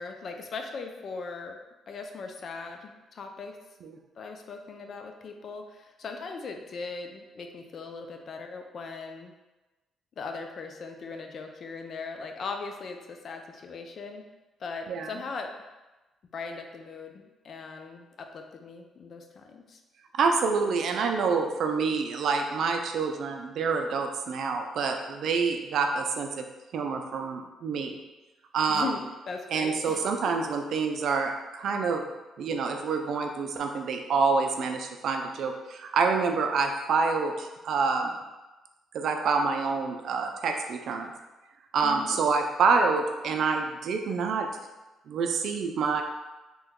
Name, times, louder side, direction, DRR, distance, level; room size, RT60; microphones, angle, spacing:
voice 1, 0.0-1.6 1.9-3.6 4.2-9.3 10.2-14.2 14.6-15.5 16.3-19.8 28.7-30.1 41.8-42.2, left 4 dB, 55° left, 4 dB, 0.3 m, -39 dB
voice 2, 20.1-26.4 26.7-27.9 28.5-28.9 29.5-32.0 32.4-38.1 38.9-41.1 41.7-44.5 45.1-46.0, right 4 dB, 70° right, 4 dB, 0.4 m, -27 dB
2.9 x 2.2 x 3.6 m, 1.1 s
cardioid pair, 90°, 0 cm